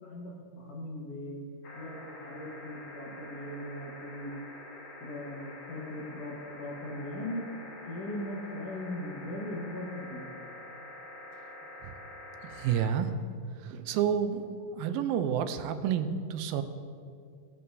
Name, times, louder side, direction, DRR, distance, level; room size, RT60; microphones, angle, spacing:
voice 1, 0.0-1.4 1.7-4.3 5.0-7.5 7.9-10.4, left 1 dB, 55° left, -3 dB, 2.2 m, -39 dB
sound 1, 1.6-12.9 14.3-14.4, left 2 dB, 80° left, 4.0 m, -46 dB
voice 2, 12.4-13.1 13.6-14.5 14.7-16.6, right 8 dB, 90° right, 9 dB, 2.4 m, -29 dB
19.0 x 7.6 x 2.7 m, 2.3 s
omnidirectional pair, 4.0 m